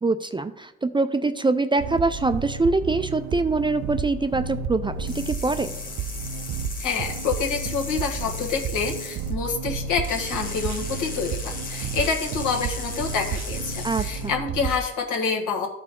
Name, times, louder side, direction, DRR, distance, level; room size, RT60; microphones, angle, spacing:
voice 1, 0.0-5.7 13.8-14.3, right 3 dB, 15° right, 10 dB, 0.4 m, -24 dB
sound 1, 1.8-14.8, right 5 dB, 65° right, 0.6 m, -32 dB
sound 2, 5.1-9.3 10.0-14.3, left 3 dB, 30° left, 1.4 m, -37 dB
voice 2, 6.8-15.7, left 5 dB, 85° left, 0 dB, 1.5 m, -27 dB
12.5 x 4.6 x 3.7 m, 0.91 s
cardioid pair, 90°, 30 cm